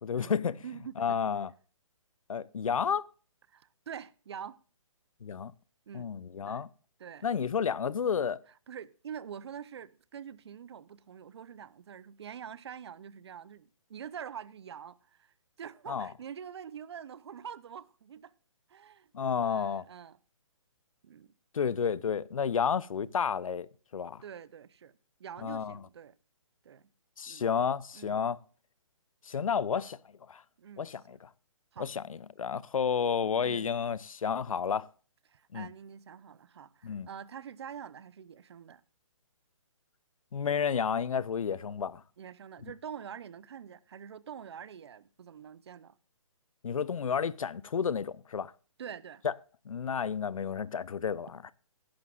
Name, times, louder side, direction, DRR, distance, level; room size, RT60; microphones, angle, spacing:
voice 1, 0.0-0.6 1.0-1.5 2.3-3.1 5.2-5.5 5.9-6.7 7.2-8.4 15.9-16.1 19.1-19.8 21.5-23.7 23.9-24.2 25.4-25.8 27.2-28.4 29.2-30.0 30.3-30.4 30.8-31.3 31.8-34.9 35.5-35.7 36.8-37.1 40.3-42.0 46.6-48.5 49.2-49.3 49.7-51.5, left 7 dB, 85° left, 0.6 m, -31 dB
voice 2, 0.6-1.2 3.5-4.6 5.9-6.1 6.5-6.7 7.0-7.3 8.7-18.3 18.7-19.1 19.4-20.2 21.0-21.3 24.2-24.9 25.2-26.1 26.6-26.9 27.3-27.4 27.9-28.2 30.6-31.2 31.7-31.9 33.4-33.7 35.3-38.8 42.2-46.0 48.8-49.2, right 8 dB, 50° right, 0.7 m, -45 dB
15.5 x 11.5 x 2.4 m
hypercardioid pair, 165°, 17 cm